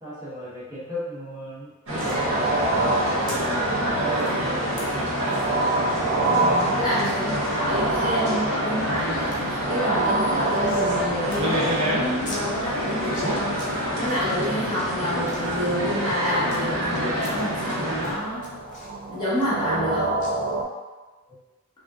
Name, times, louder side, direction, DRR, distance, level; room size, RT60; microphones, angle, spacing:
voice 1, 0.0-3.0 3.6-4.9 6.6-6.8, equal, 15° right, -12 dB, 0.9 m, -36 dB
sound 1, 1.9-2.2 3.3-3.4 4.1-4.3 4.8-4.9 5.3-5.5 5.9-6.0 6.2-6.3 7.0-7.2 7.7-8.2 8.6-9.0 9.3-9.4 9.7-11.0 11.3-11.4 11.7-11.8 12.3-12.4 13.0-13.7 14.0-14.5 14.9-16.6 17.2-17.8 18.0-19.9 20.2-20.3, left 2 dB, 35° left, 0.6 m, -42 dB
sound 2, 1.9-18.1, equal, 60° right, 0.8 m, -27 dB
sound 3, 2.0-20.6, right 2 dB, 40° right, 0.4 m, -29 dB
voice 2, 6.3-18.5 19.1-20.2, equal, 20° left, -10 dB, 1.0 m, -29 dB
3.4 x 2.6 x 2.3 m, 1.2 s
head